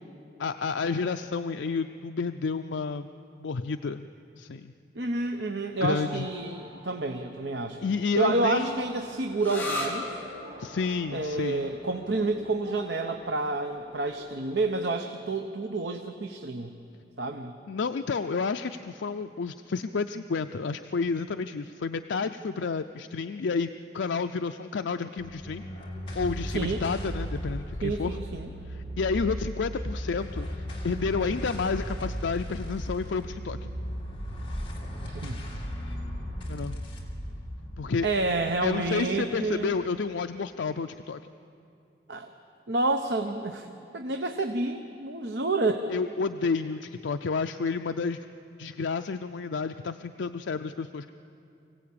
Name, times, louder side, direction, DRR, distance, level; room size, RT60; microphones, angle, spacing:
voice 1, 0.4-3.1 3.4-4.1 4.4-4.7 5.8-6.3 7.8-8.8 10.6-11.6 17.7-25.6 26.2-28.2 28.7-33.7 36.5-36.8 37.8-38.1 38.6-41.2 45.9-48.2 48.6-51.1, left 4 dB, 75° left, 8 dB, 0.5 m, -30 dB
voice 2, 4.9-7.8 8.2-10.2 11.1-16.7 17.2-17.5 26.5-26.8 27.8-28.5 35.1-35.4 38.0-39.7 42.1-42.3 42.7-43.7 43.9-45.9, right 2 dB, 65° right, 5 dB, 0.9 m, -29 dB
sound 1, 6.1-14.8, equal, 40° right, 3.8 m, -49 dB
sound 2, 9.4-16.8, left 1 dB, 10° left, 2.8 m, -40 dB
sound 3, 25.2-39.8, equal, 25° left, 2.6 m, -36 dB
24.5 x 16.5 x 8.6 m, 2.6 s
head